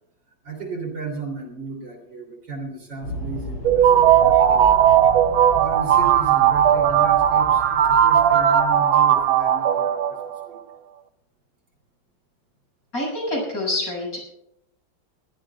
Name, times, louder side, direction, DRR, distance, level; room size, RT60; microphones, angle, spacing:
voice 1, 0.4-4.7 5.5-10.6, right 4 dB, 65° right, 2 dB, 3.9 m, -34 dB
sound 1, 3.0-9.5, left 1 dB, 85° left, 7.5 m, -35 dB
sound 2, 3.7-10.5, right 9 dB, 85° right, 1.6 m, -17 dB
voice 2, 12.9-14.2, left 1 dB, 45° left, -2 dB, 7.0 m, -26 dB
23.5 x 16.0 x 2.4 m, 0.80 s
omnidirectional pair, 2.2 m